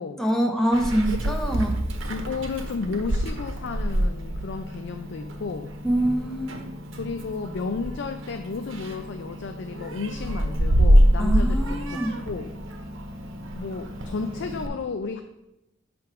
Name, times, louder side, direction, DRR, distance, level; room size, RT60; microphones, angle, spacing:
voice 1, 0.2-1.8 5.8-6.6 11.2-12.1, right 1 dB, 5° left, 2 dB, 0.7 m, -24 dB
Meow, 0.7-14.7, equal, 90° right, 0.9 m, -26 dB
voice 2, 2.1-5.7 7.0-12.0 12.3-12.5 13.5-15.2, left 4 dB, 65° left, 7 dB, 0.4 m, -33 dB
7.6 x 3.3 x 5.8 m, 0.90 s
head